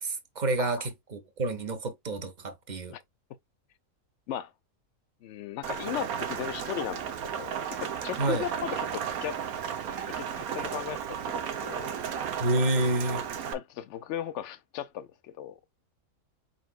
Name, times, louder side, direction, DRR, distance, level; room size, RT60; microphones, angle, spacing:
voice 1, 0.0-2.9 8.2-8.5 12.4-13.2, right 2 dB, 35° right, 0.9 m, -29 dB
voice 2, 5.2-9.4 10.2-12.0 13.5-15.6, left 11 dB, 65° left, 0.8 m, -37 dB
Rain, 5.6-13.5, right 8 dB, 85° right, 1.2 m, -34 dB
4.9 x 4.1 x 2.3 m
omnidirectional pair, 1.5 m